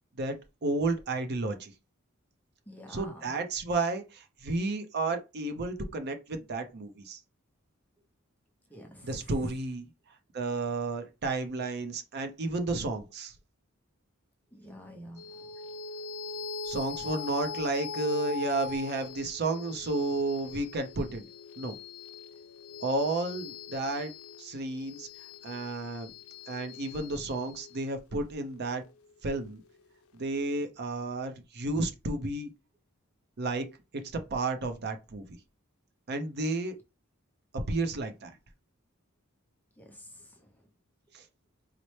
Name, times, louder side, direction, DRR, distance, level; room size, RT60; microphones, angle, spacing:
voice 1, 0.2-1.7 2.9-7.2 9.0-9.8 10.3-13.3 16.6-21.3 21.6-21.7 22.8-24.1 24.4-25.1 25.4-26.1 26.5-28.8 29.2-29.6 30.1-32.5 33.4-33.7 33.9-34.0 34.3-35.4 36.1-36.7 37.7-38.3 41.1-41.2, right 2 dB, 50° right, 0.6 m, -32 dB
voice 2, 2.7-3.3 8.7-9.3 14.5-15.5 39.8-40.5, equal, 10° left, 0.6 m, -49 dB
sound 1, 15.2-29.9, left 4 dB, 80° left, 0.4 m, -42 dB
4.2 x 2.0 x 3.1 m
head